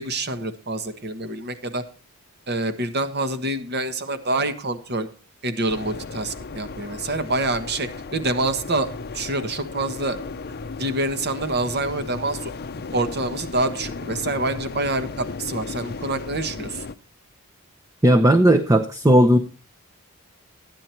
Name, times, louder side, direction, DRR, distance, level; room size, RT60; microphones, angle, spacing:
voice 1, 0.0-1.8 2.5-5.1 5.4-10.2 10.8-12.5 12.9-16.8, right 2 dB, 50° right, 10 dB, 1.2 m, -26 dB
sound 1, 5.7-16.9, left 4 dB, 45° left, 0.6 m, -35 dB
voice 2, 18.0-19.4, right 1 dB, 15° right, 8 dB, 0.6 m, -15 dB
14.0 x 9.9 x 4.4 m, 0.37 s
head